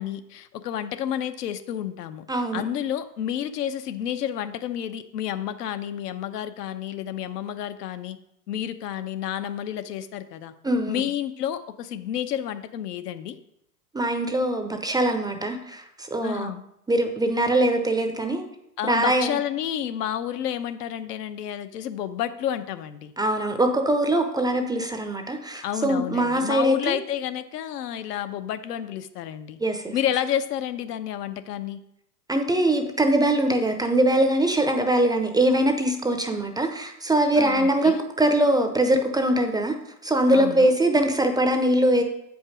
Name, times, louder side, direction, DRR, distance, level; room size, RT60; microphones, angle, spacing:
voice 1, 0.0-8.2 8.5-10.5 10.9-13.4 16.2-16.6 18.8-23.1 25.6-29.6 29.9-31.8 37.3-38.0 40.3-40.7, left 10 dB, 75° left, 10 dB, 0.8 m, -30 dB
voice 2, 2.3-2.6 10.6-11.0 13.9-16.5 16.9-18.4 18.8-19.3 23.2-27.0 29.6-29.9 32.3-39.8 40.0-42.0, right 1 dB, 10° right, 6 dB, 0.5 m, -22 dB
8.0 x 5.3 x 5.0 m, 0.78 s
hypercardioid pair, 100°, 48 cm